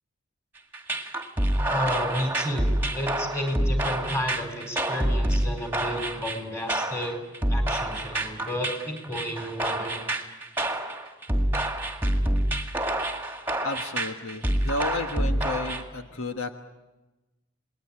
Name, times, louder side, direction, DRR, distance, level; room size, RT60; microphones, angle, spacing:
sound 1, 0.7-15.8, right 1 dB, 10° right, 2.1 m, -27 dB
voice 1, 1.7-7.2 7.5-10.0, equal, 10° left, 5 dB, 4.3 m, -32 dB
voice 2, 13.6-16.5, left 2 dB, 75° left, 5 dB, 1.4 m, -32 dB
29.0 x 20.5 x 8.8 m, 1.1 s
head